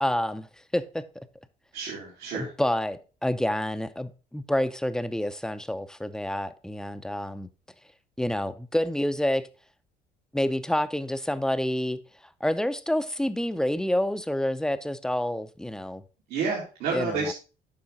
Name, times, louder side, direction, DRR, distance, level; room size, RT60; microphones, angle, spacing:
voice 1, 0.0-0.5 0.7-1.0 2.3-7.5 8.2-9.4 10.3-12.0 12.4-16.0 16.9-17.3, left 1 dB, 5° left, 0.5 m, -28 dB
voice 2, 1.7-2.5 16.3-17.3, right 4 dB, 85° right, 2.7 m, -30 dB
8.7 x 5.5 x 4.0 m
cardioid pair, 110°, 17 cm